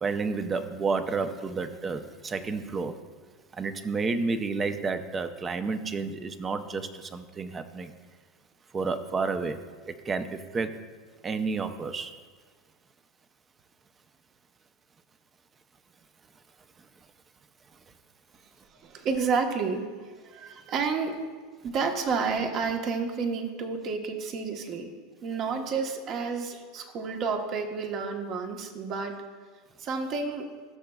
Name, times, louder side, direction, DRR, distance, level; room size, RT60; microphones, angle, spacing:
voice 1, 0.0-3.0 3.5-7.9 8.7-10.8 11.2-12.1, right 4 dB, 25° right, 0.6 m, -31 dB
voice 2, 18.8-21.2 21.6-24.9 25.2-29.2 29.8-30.5, right 5 dB, 45° right, 1.2 m, -30 dB
16.0 x 6.6 x 2.4 m
supercardioid pair, 110°, 0 cm